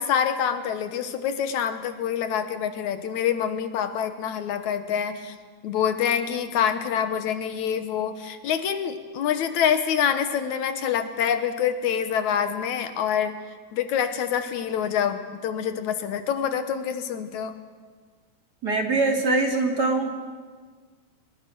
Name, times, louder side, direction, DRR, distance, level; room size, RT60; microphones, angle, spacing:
voice 1, 0.0-5.4 5.6-13.4 13.7-17.6, left 8 dB, 80° left, 9 dB, 2.6 m, -26 dB
voice 2, 18.6-20.1, right 3 dB, 35° right, 2 dB, 2.8 m, -23 dB
28.0 x 21.5 x 6.3 m, 1.6 s
omnidirectional pair, 3.4 m